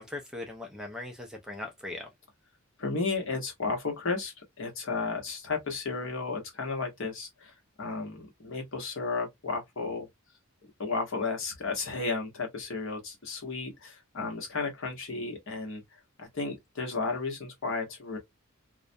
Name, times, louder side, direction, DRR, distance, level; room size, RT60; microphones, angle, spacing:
voice 1, 0.0-2.1, left 2 dB, 5° right, 0.3 m, -39 dB
voice 2, 2.8-10.1 10.8-15.8 16.2-18.2, left 4 dB, 55° left, 1.0 m, -33 dB
2.3 x 2.1 x 2.5 m
head